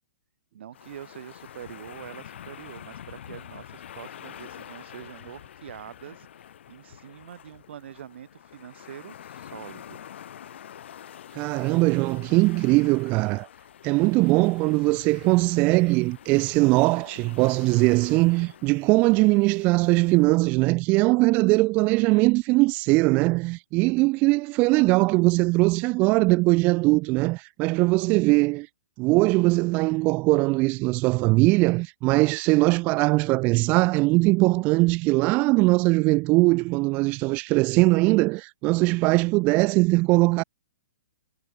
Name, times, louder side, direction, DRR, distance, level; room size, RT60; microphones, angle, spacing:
voice 1, 0.5-6.3 6.7-10.0, right 10 dB, 60° right, 7.9 m, -44 dB
sound 1, 0.7-20.3, left 10 dB, 65° left, 1.8 m, -46 dB
voice 2, 11.3-13.5 13.8-28.7 29.0-40.4, right 24 dB, 25° right, 0.3 m, -21 dB
hypercardioid pair, 155°, 7 cm